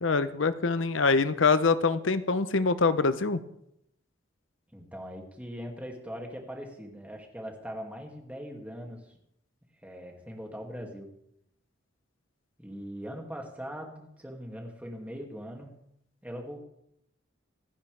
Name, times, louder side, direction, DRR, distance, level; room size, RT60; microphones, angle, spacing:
voice 1, 0.0-3.4, left 4 dB, 80° left, 12 dB, 0.8 m, -24 dB
voice 2, 4.7-9.1 9.8-11.1 12.6-15.7 16.2-16.6, equal, 5° right, 1 dB, 2.4 m, -41 dB
26.5 x 10.5 x 3.5 m, 0.77 s
head